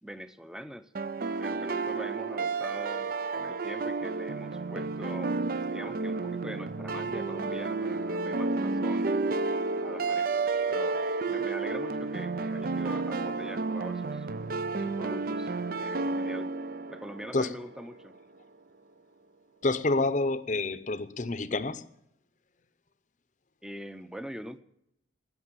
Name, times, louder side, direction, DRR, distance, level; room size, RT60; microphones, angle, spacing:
voice 1, 0.0-0.9 1.4-5.4 5.7-9.2 9.8-14.3 14.7-15.5 15.8-16.5 16.9-18.2 23.6-24.6, equal, 5° right, 0.6 m, -43 dB
sound 1, 0.9-17.8, right 3 dB, 50° right, 0.5 m, -31 dB
voice 2, 19.6-21.9, left 2 dB, 40° left, 0.7 m, -28 dB
13.5 x 9.5 x 9.7 m
head